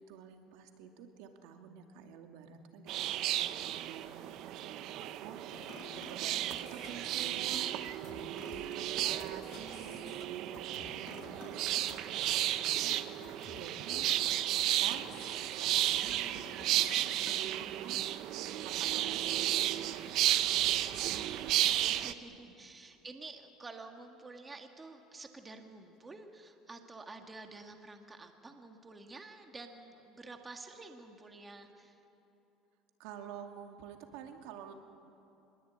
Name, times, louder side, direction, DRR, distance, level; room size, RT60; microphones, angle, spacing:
voice 1, 0.0-13.0 13.5-14.1 14.6-15.1 15.6-18.0 18.6-20.5 20.8-21.5 22.3-22.5 33.0-34.7, right 7 dB, 75° right, 5 dB, 2.4 m, -50 dB
sound 1, 2.9-22.1, right 13 dB, 55° right, 0.9 m, -33 dB
sound 2, 5.5-17.7, left 9 dB, 55° left, 1.8 m, -53 dB
voice 2, 21.0-32.0, right 3 dB, 15° right, 5 dB, 1.8 m, -50 dB
24.5 x 21.5 x 8.9 m, 3.0 s
cardioid pair, 135°, 0 cm